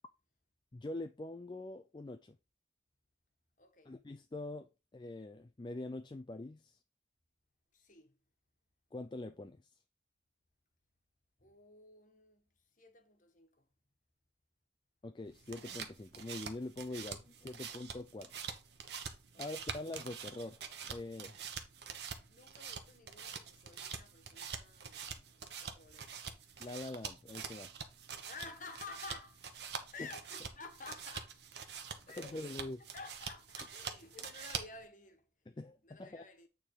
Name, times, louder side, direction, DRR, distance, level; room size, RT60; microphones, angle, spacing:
voice 1, 0.7-2.4 3.9-6.8 8.9-9.6 15.0-18.4 19.4-21.3 26.6-27.7 32.2-32.8 35.6-36.2, left 2 dB, 25° left, 0.4 m, -44 dB
voice 2, 3.6-4.0 7.7-8.2 11.4-13.7 19.3-19.7 22.0-26.2 28.2-29.5 29.9-31.5 32.0-32.4 32.8-35.3 35.8-36.5, left 4 dB, 45° left, 1.4 m, -52 dB
sound 1, 15.3-34.9, right 6 dB, 65° right, 1.1 m, -46 dB
9.0 x 3.7 x 4.8 m
head